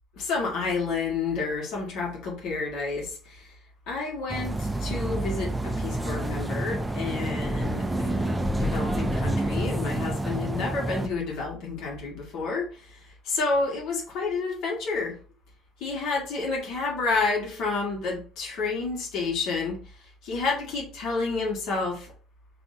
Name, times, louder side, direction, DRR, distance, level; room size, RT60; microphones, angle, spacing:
voice 1, 0.2-3.5 3.9-15.2 15.8-22.1, left 4 dB, 60° left, 1.7 m, -30 dB
sound 1, 4.3-11.1, right 1 dB, 10° right, 0.4 m, -28 dB
5.8 x 2.7 x 2.7 m
cardioid pair, 145°, 0 cm